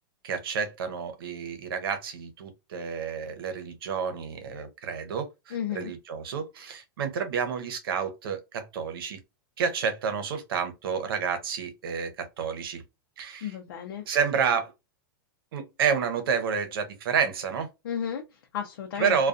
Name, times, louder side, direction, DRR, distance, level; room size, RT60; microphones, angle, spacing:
voice 1, 0.2-9.2 9.6-12.8 13.2-13.5 14.1-14.7 15.5-17.7 19.0-19.3, right 6 dB, 80° right, 0.8 m, -29 dB
voice 2, 5.5-5.9 13.4-14.0 17.8-19.3, left 8 dB, 75° left, 0.6 m, -33 dB
2.3 x 2.3 x 2.5 m
supercardioid pair, 140°, 12 cm